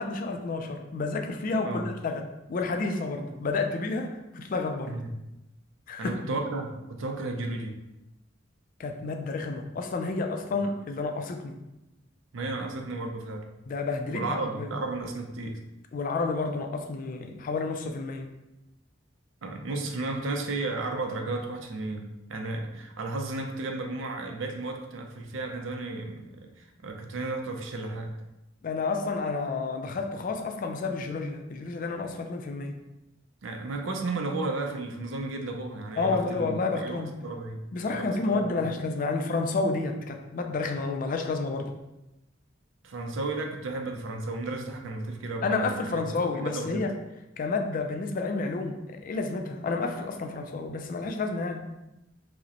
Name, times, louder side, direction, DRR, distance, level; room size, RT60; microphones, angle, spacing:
voice 1, 0.0-5.0 5.9-6.2 8.8-11.6 13.7-14.7 15.9-18.3 28.6-32.8 36.0-37.1 37.7-41.8 45.4-46.9 47.4-51.6, left 3 dB, 45° left, 4 dB, 0.3 m, -30 dB
voice 2, 6.0-7.8 10.5-10.6 12.3-13.4 14.1-15.6 19.4-22.0 22.3-28.1 33.4-37.6 37.9-38.8 42.8-46.8, right 2 dB, 75° right, 3 dB, 0.5 m, -33 dB
4.9 x 2.1 x 2.9 m, 0.95 s
head